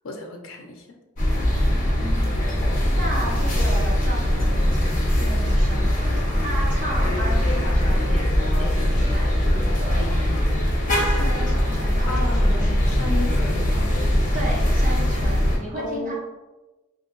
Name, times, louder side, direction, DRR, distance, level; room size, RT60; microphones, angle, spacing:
voice 1, 0.0-1.0 12.1-14.0 15.7-16.1, left 2 dB, 75° left, 1 dB, 0.5 m, -34 dB
sound 1, 1.2-15.6, equal, 40° left, 0.7 m, -21 dB
voice 2, 1.7-2.4 2.9-8.2 8.5-10.1 10.6-13.1 14.3-16.1, right 1 dB, 35° right, -3 dB, 0.7 m, -34 dB
3.7 x 2.6 x 2.5 m, 1.1 s
head